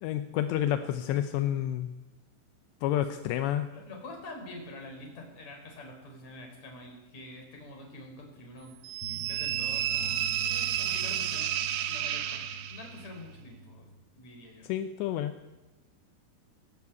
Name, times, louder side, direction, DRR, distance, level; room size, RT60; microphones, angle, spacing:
voice 1, 0.0-1.9 2.8-3.7 14.7-15.3, left 11 dB, 80° left, 9 dB, 2.6 m, -29 dB
voice 2, 3.7-8.7 9.1-11.5 11.9-14.7, left 2 dB, 35° left, 2 dB, 5.4 m, -46 dB
sound 1, 8.8-13.0, right 11 dB, 90° right, 3.7 m, -31 dB
sound 2, 9.0-14.0, right 2 dB, 60° left, 6.1 m, -44 dB
18.5 x 17.0 x 8.4 m, 1.1 s
omnidirectional pair, 5.8 m